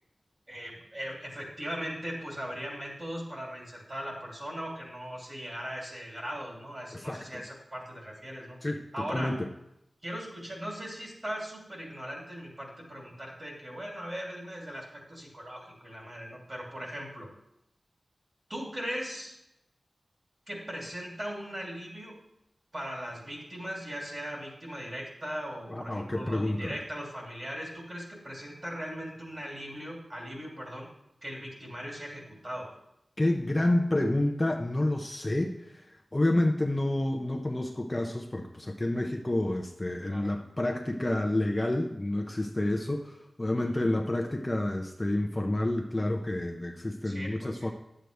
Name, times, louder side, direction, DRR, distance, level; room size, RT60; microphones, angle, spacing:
voice 1, 0.5-8.6 8.9-9.4 10.0-17.3 18.5-19.4 20.5-22.1 22.7-30.9 31.2-32.7 40.0-40.3 43.6-43.9 47.0-47.7, equal, 35° right, -2 dB, 3.0 m, -39 dB
voice 2, 6.9-7.4 8.6-8.8 9.1-9.5 25.7-26.8 33.2-35.8 36.1-47.7, left 1 dB, 20° left, 2 dB, 0.7 m, -29 dB
11.0 x 7.8 x 3.4 m, 0.82 s
wide cardioid pair, 95°, 0 cm